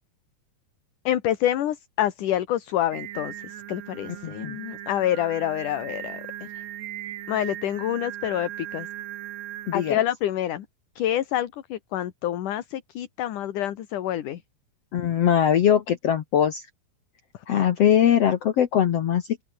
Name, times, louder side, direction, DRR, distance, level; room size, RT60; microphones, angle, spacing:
voice 1, 1.0-6.6 7.3-8.9 9.7-10.7 11.0-14.4 17.3-17.4, left 12 dB, 60° left, 2.7 m, -27 dB
Singing, 2.9-9.9, right 13 dB, 85° right, 3.7 m, -38 dB
voice 2, 14.9-16.6 17.5-19.2, left 9 dB, 75° left, 1.4 m, -21 dB
open air
omnidirectional pair, 4.7 m